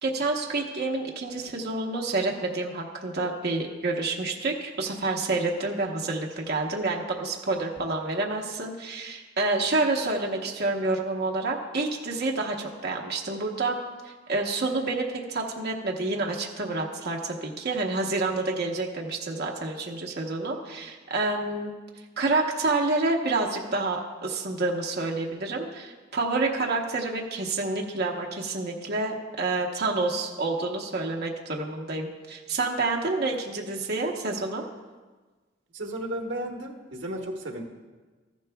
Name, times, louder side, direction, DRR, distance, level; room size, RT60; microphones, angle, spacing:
voice 1, 0.0-13.8 14.0-21.7 22.2-34.6, right 3 dB, 60° right, 0 dB, 1.0 m, -28 dB
voice 2, 35.7-37.6, right 1 dB, 75° right, 2 dB, 1.2 m, -34 dB
14.0 x 10.5 x 2.3 m, 1.3 s
head